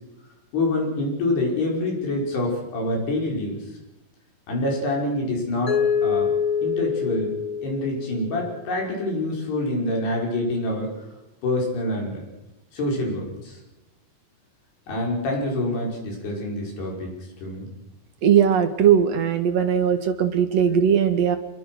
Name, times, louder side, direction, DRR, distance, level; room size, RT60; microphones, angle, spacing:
voice 1, 0.5-3.7 4.5-6.3 6.6-7.3 7.6-10.9 11.4-12.2 12.7-13.6 14.9-17.1 17.4-17.7, left 1 dB, 80° left, -1 dB, 7.7 m, -26 dB
Mallet percussion, 5.7-8.6, left 7 dB, 35° left, 3.5 m, -25 dB
voice 2, 18.2-21.4, right 8 dB, 55° right, 7 dB, 2.1 m, -19 dB
26.5 x 22.5 x 6.3 m, 0.97 s
omnidirectional pair, 4.6 m